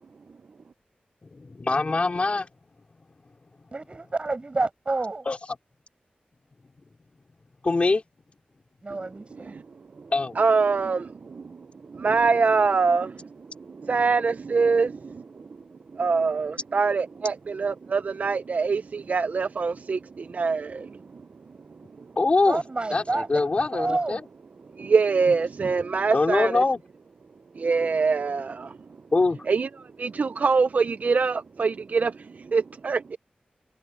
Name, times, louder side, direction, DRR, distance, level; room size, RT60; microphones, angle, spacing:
voice 1, 1.2-2.5 5.3-5.4 7.6-8.0 10.1-10.3 22.2-22.6 22.9-24.2 26.1-26.8 29.1-29.4, left 3 dB, 40° left, 4.6 m, -23 dB
voice 2, 3.7-5.3 8.8-9.5 22.5-23.3 23.7-24.2, right 3 dB, 35° right, 7.7 m, -29 dB
voice 3, 10.0-15.5 15.9-21.2 22.0-22.1 24.7-26.6 27.5-28.8 29.5-33.2, right 4 dB, 55° right, 0.5 m, -25 dB
wide cardioid pair, 115°, 3 cm